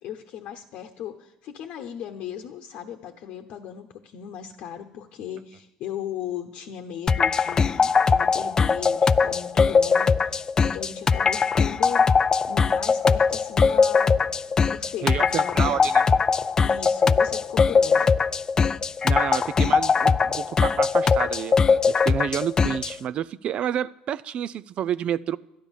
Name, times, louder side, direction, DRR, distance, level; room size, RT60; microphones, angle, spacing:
voice 1, 0.0-12.1 12.5-16.0 16.6-18.2, left 9 dB, 65° left, 1.0 m, -37 dB
sound 1, 7.1-23.0, left 5 dB, 30° left, 0.4 m, -21 dB
voice 2, 15.0-16.0 19.0-21.6 21.9-25.4, right 9 dB, 55° right, 0.4 m, -29 dB
12.5 x 10.0 x 7.2 m
supercardioid pair, 90°, 2 cm